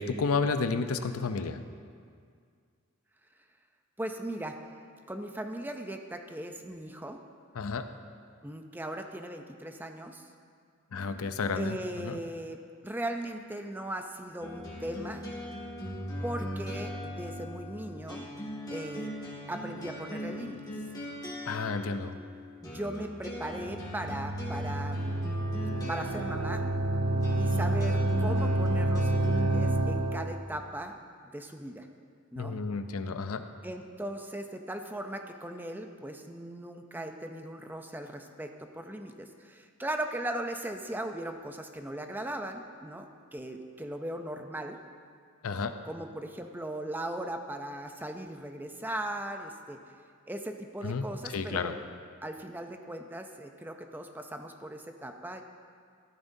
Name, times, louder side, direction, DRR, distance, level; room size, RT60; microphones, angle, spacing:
voice 1, 0.0-1.6 7.5-7.8 10.9-12.2 21.5-22.2 32.4-33.4 45.4-45.7 50.8-51.7, left 4 dB, 80° left, 9 dB, 0.6 m, -31 dB
voice 2, 4.0-4.6 5.1-7.2 8.4-10.3 11.6-15.2 16.2-18.3 18.7-19.1 19.5-20.6 22.6-25.3 25.9-26.6 27.4-31.0 31.3-31.9 32.3-32.6 33.6-44.8 45.9-49.8 50.3-51.8 52.2-55.4, right 1 dB, 10° right, 5 dB, 0.5 m, -38 dB
sound 1, 14.4-29.6, equal, 20° left, 2.0 m, -39 dB
sound 2, 23.6-30.4, right 1 dB, 70° right, 0.7 m, -29 dB
14.5 x 12.5 x 2.7 m, 2.1 s
head